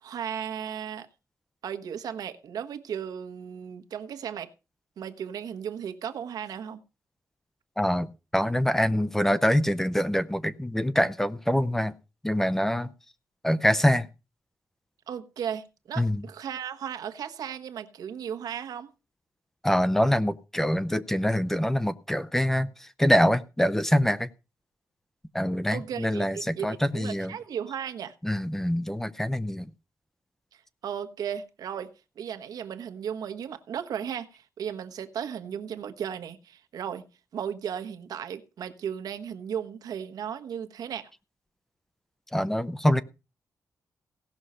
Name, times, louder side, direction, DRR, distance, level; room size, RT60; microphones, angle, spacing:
voice 1, 0.0-1.1 1.6-4.5 5.0-6.8 15.1-18.9 25.7-28.1 30.5-37.0 37.3-41.1, right 8 dB, 85° right, 1.3 m, -35 dB
voice 2, 7.8-8.1 8.3-11.9 12.2-12.9 13.4-14.1 16.0-16.2 19.6-24.3 25.3-27.4 28.2-29.7 42.3-43.0, equal, 5° left, 0.6 m, -25 dB
17.0 x 6.4 x 5.5 m
wide cardioid pair, 160°, 6 cm